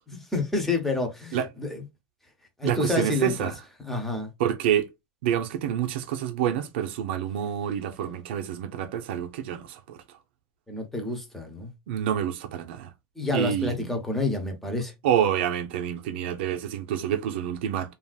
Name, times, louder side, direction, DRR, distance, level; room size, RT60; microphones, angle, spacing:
voice 1, 0.1-1.8 2.6-3.5 3.8-4.3 10.7-11.7 13.2-14.9, left 2 dB, 5° left, 0.8 m, -29 dB
voice 2, 2.6-3.6 4.4-4.9 5.2-10.0 11.9-12.9 13.3-13.9 15.0-17.9, right 9 dB, 90° right, 0.6 m, -27 dB
3.4 x 2.4 x 2.3 m
cardioid pair, 165°, 6 cm